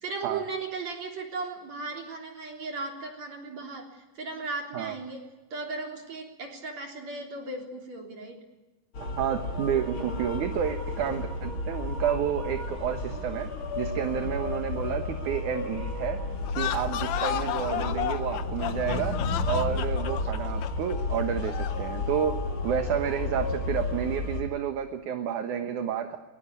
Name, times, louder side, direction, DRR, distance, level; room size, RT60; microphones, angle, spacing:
voice 1, 0.0-8.4, right 3 dB, 45° right, 3 dB, 4.5 m, -36 dB
sound 1, 8.9-24.4, left 2 dB, 35° left, 3.2 m, -32 dB
voice 2, 9.0-13.5 13.8-16.2 16.5-19.2 19.5-26.3, right 8 dB, 60° right, 7 dB, 2.4 m, -30 dB
sound 2, 16.4-21.9, left 11 dB, 70° left, 1.7 m, -33 dB
22.5 x 21.0 x 9.6 m, 1.1 s
omnidirectional pair, 4.5 m